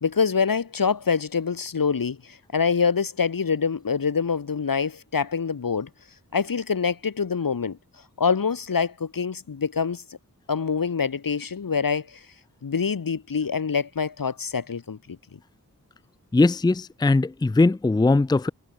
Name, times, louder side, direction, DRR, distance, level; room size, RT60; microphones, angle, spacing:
voice 1, 0.0-5.9 6.3-7.8 8.2-10.0 10.5-12.2 12.6-15.4, left 5 dB, 85° left, 2.5 m, -25 dB
voice 2, 16.3-18.5, left 3 dB, 15° left, 0.4 m, -20 dB
wide cardioid pair, 75°, 33 cm